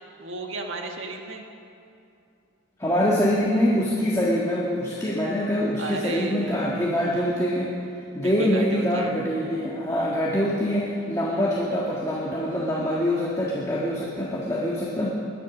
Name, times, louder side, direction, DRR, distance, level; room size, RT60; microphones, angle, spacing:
voice 1, 0.2-1.4 5.8-6.9 8.2-9.1, right 2 dB, 70° right, 2 dB, 1.6 m, -34 dB
voice 2, 2.8-7.7 8.1-15.1, equal, 15° left, -5 dB, 1.6 m, -24 dB
21.0 x 10.5 x 6.1 m, 2.6 s
head